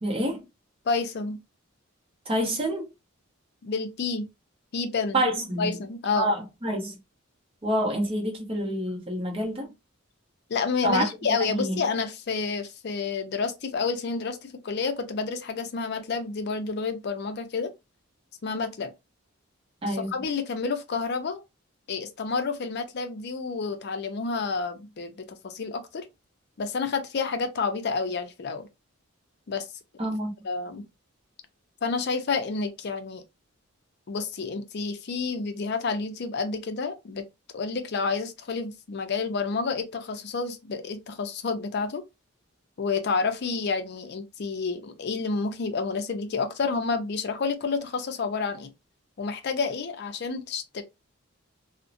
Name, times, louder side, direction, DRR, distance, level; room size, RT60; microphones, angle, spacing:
voice 1, 0.0-0.5 2.3-2.9 5.1-5.8 6.1-7.0 7.6-9.7 10.8-11.1 11.5-11.8 19.8-20.2 30.0-30.3, right 1 dB, 25° right, 0.7 m, -27 dB
voice 2, 0.9-1.4 3.6-4.3 4.7-5.2 5.6-6.3 10.5-17.7 18.4-18.9 19.9-21.4 21.9-26.1 26.6-28.7 29.5-29.7 30.4-30.9 31.8-33.2 34.1-37.3 37.5-42.0 42.8-48.7 49.2-50.8, left 4 dB, 55° left, 0.4 m, -29 dB
2.6 x 2.1 x 2.4 m
head